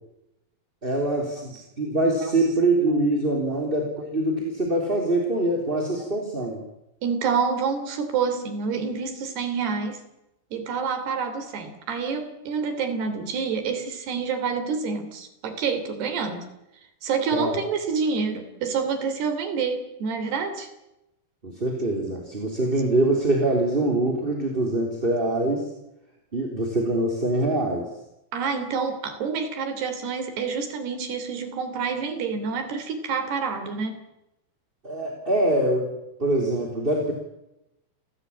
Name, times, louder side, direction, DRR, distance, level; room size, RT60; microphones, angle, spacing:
voice 1, 0.8-6.6 17.3-17.6 21.4-25.7 26.3-27.9 34.8-37.1, right 1 dB, 15° right, 1 dB, 3.1 m, -24 dB
voice 2, 7.0-10.0 10.5-16.4 17.0-20.7 28.3-34.0, right 5 dB, 70° right, 8 dB, 5.1 m, -28 dB
29.0 x 17.0 x 8.7 m, 0.89 s
omnidirectional pair, 5.0 m